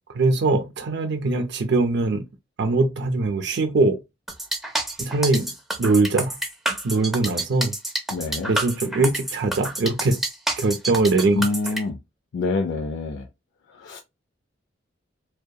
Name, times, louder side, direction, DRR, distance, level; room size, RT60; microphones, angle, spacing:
voice 1, 0.1-2.3 2.6-4.0 5.0-5.5 5.8-6.4 6.7-7.7 8.5-10.2 10.6-11.5, right 3 dB, 65° right, 0.4 m, -22 dB
sound 1, 4.3-11.8, right 1 dB, ahead, 0.4 m, -28 dB
voice 2, 8.1-8.5 11.3-12.0 12.3-13.3 13.8-14.0, left 3 dB, 85° left, 0.4 m, -26 dB
2.7 x 2.2 x 2.2 m
head